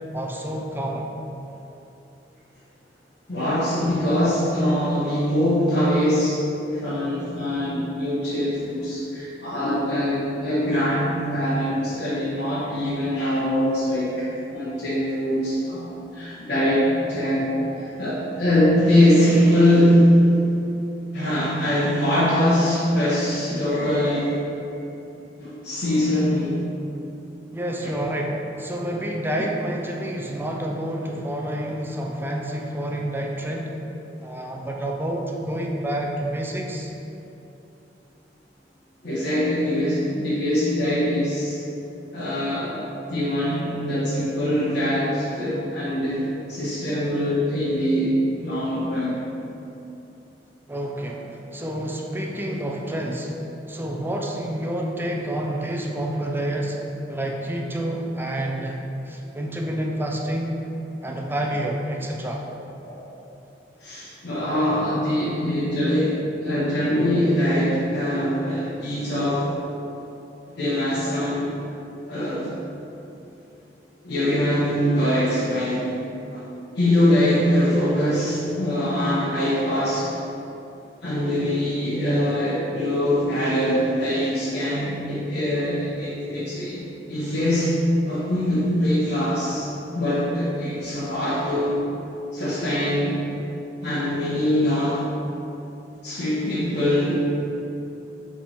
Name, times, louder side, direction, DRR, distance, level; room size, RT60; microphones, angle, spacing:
voice 1, 0.1-1.1 27.5-33.7 34.2-36.9 50.7-53.4 53.7-56.8 57.1-58.8 59.0-60.6 61.0-62.4, right 1 dB, 10° right, 0 dB, 0.5 m, -28 dB
voice 2, 3.3-20.2 21.1-24.4 25.4-26.6 27.8-27.9 39.0-41.6 42.1-49.2 62.8-63.0 63.8-69.5 70.6-71.5 72.1-72.5 74.0-75.9 76.3-76.4 76.7-80.2 81.0-87.8 88.0-91.8 92.3-93.2 93.8-95.0 96.0-97.3, equal, 70° left, -11 dB, 1.2 m, -23 dB
7.2 x 3.6 x 4.3 m, 2.9 s
head